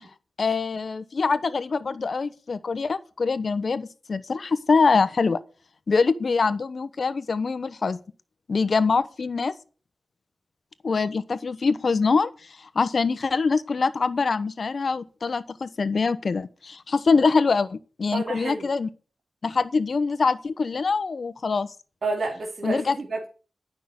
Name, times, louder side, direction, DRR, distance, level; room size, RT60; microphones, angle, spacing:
voice 1, 0.4-5.4 5.9-8.0 8.5-9.5 10.8-18.9 19.4-21.7 22.6-23.0, left 4 dB, 60° left, 0.9 m, -24 dB
voice 2, 18.1-18.7 22.0-23.3, right 3 dB, 60° right, 2.7 m, -29 dB
12.0 x 5.9 x 8.1 m
wide cardioid pair, 85°, 0 cm